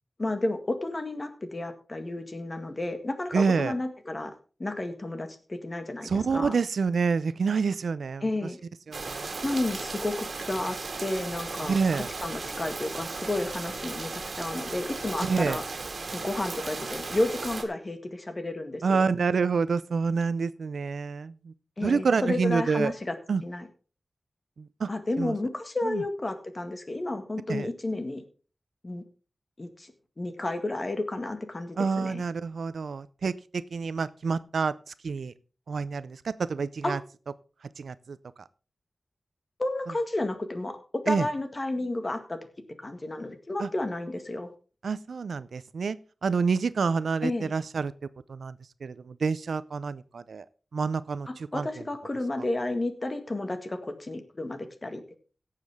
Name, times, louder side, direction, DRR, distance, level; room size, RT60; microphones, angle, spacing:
voice 1, 0.2-4.3 4.6-6.6 8.2-8.6 9.4-15.6 16.1-19.1 21.8-23.1 23.4-23.7 24.9-28.2 28.8-29.0 29.6-32.2 36.8-37.0 39.6-40.8 41.1-42.4 42.8-44.5 47.2-47.5 51.3-55.2, left 2 dB, 40° left, 8 dB, 1.8 m, -32 dB
voice 2, 3.3-3.7 6.0-8.3 8.9-9.4 11.7-12.1 15.2-15.6 18.8-21.5 21.8-22.9 23.3-23.4 24.6-24.9 25.2-25.4 25.8-26.0 27.5-27.7 31.8-35.3 35.7-37.0 37.6-38.2 41.1-41.3 43.6-43.7 44.8-47.9 48.3-50.5 50.7-51.7, right 5 dB, 90° right, 16 dB, 0.5 m, -28 dB
sound 1, 8.9-17.6, right 3 dB, 65° right, 1.9 m, -36 dB
17.0 x 7.5 x 3.6 m, 0.37 s
wide cardioid pair, 70°, 0 cm